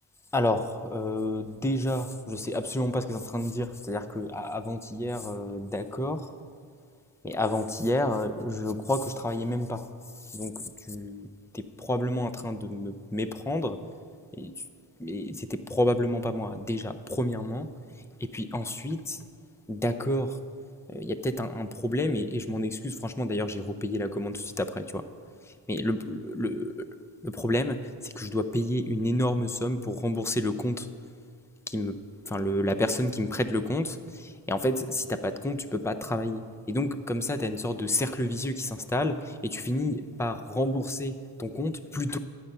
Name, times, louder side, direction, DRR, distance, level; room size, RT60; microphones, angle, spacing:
voice 1, 0.3-6.3 7.2-9.8 10.3-10.5 10.9-11.3 11.5-13.8 14.4-14.5 15.0-17.7 18.2-19.2 19.7-20.4 20.9-25.0 25.7-26.7 27.2-27.8 28.0-30.9 31.7-32.0 32.3-36.4 36.7-42.2, left 1 dB, 5° left, 10 dB, 0.5 m, -29 dB
11.5 x 9.0 x 5.4 m, 2.2 s
cardioid pair, 80°, 48 cm